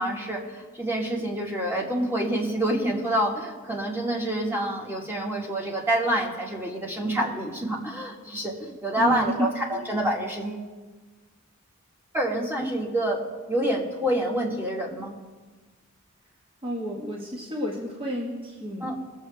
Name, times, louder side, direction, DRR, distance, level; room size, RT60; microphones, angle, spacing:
voice 1, 0.0-10.7 12.1-13.2 13.5-15.1 18.8-19.0, right 1 dB, 10° right, -2 dB, 1.8 m, -27 dB
voice 2, 9.0-9.8 16.6-18.9, equal, 25° right, -2 dB, 1.4 m, -31 dB
21.0 x 7.3 x 3.5 m, 1.3 s
head